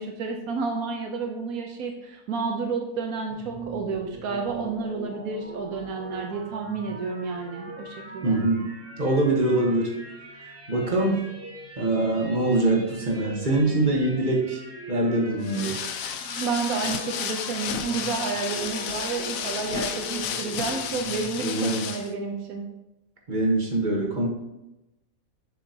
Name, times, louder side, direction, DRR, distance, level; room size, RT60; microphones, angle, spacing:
voice 1, 0.0-8.4 16.4-22.6, right 4 dB, 85° right, 2 dB, 1.3 m, -30 dB
sound 1, 3.3-21.4, right 3 dB, 10° right, 1.2 m, -41 dB
voice 2, 8.2-8.6 9.0-9.9 10.7-11.2 11.8-14.6 14.9-15.8 21.4-21.9 23.3-24.3, right 2 dB, 35° right, -1 dB, 1.4 m, -23 dB
sound 2, 15.4-22.1, left 7 dB, 75° left, 1.1 m, -32 dB
7.0 x 6.9 x 2.9 m, 0.92 s
omnidirectional pair, 1.5 m